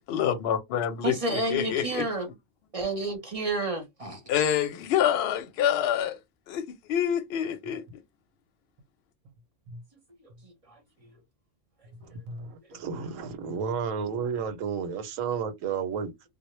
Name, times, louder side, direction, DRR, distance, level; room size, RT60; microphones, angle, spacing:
voice 1, 0.1-2.0 4.3-6.2 6.5-7.8, left 9 dB, 65° left, 0.7 m, -27 dB
voice 2, 1.0-2.3 2.7-4.2 10.4-10.5, right 2 dB, 35° right, 0.6 m, -30 dB
voice 3, 12.1-16.1, right 6 dB, 85° right, 1.0 m, -32 dB
2.0 x 2.0 x 3.0 m
omnidirectional pair, 1.3 m